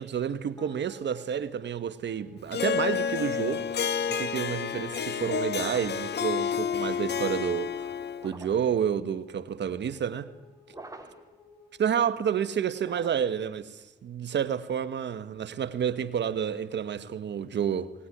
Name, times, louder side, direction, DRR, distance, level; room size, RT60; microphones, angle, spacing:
voice 1, 0.0-7.9 8.2-10.3 11.8-17.9, right 8 dB, 75° right, 1.3 m, -30 dB
sound 1, 0.6-13.1, left 3 dB, 15° left, 7.6 m, -56 dB
Harp, 2.5-8.3, left 7 dB, 65° left, 1.1 m, -30 dB
sound 2, 5.6-6.1 8.1-8.8 10.7-11.3 12.8-13.5, right 2 dB, 20° right, 3.5 m, -46 dB
20.0 x 19.0 x 9.9 m
supercardioid pair, 50°, 18 cm